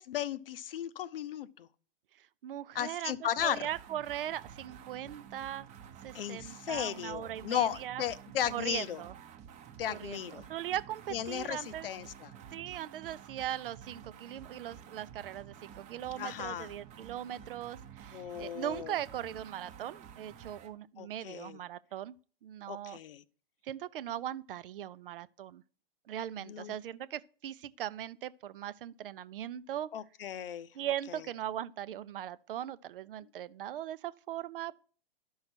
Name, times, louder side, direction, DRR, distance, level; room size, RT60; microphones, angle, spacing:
voice 1, 0.0-1.7 2.7-3.7 6.1-9.0 9.8-10.5 11.1-12.3 16.1-16.7 18.1-19.0 21.0-21.6 22.7-23.2 26.4-26.7 29.9-30.7, left 10 dB, 70° left, 0.7 m, -36 dB
voice 2, 2.4-5.7 6.0-8.0 8.5-9.1 9.9-11.9 12.5-23.0 23.6-25.6 26.1-29.9 30.7-34.7, right 11 dB, 65° right, 0.6 m, -39 dB
sound 1, 3.4-20.8, right 8 dB, 25° right, 0.8 m, -51 dB
12.0 x 5.6 x 4.4 m
hypercardioid pair, 125°, 29 cm